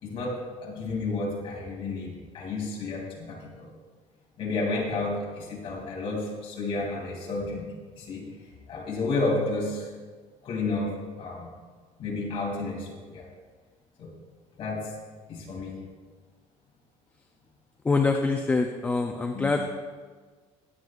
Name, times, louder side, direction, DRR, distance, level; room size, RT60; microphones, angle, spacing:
voice 1, 0.0-3.7 4.4-7.7 7.9-8.3 8.7-9.9 10.4-11.5 12.0-13.3 14.0-14.1 14.6-14.9 15.3-15.8 19.3-19.5, left 3 dB, 45° left, -3 dB, 2.9 m, -31 dB
voice 2, 17.8-19.7, left 3 dB, 10° left, 3 dB, 0.4 m, -25 dB
20.5 x 7.9 x 2.5 m, 1.5 s
cardioid pair, 175°, 13 cm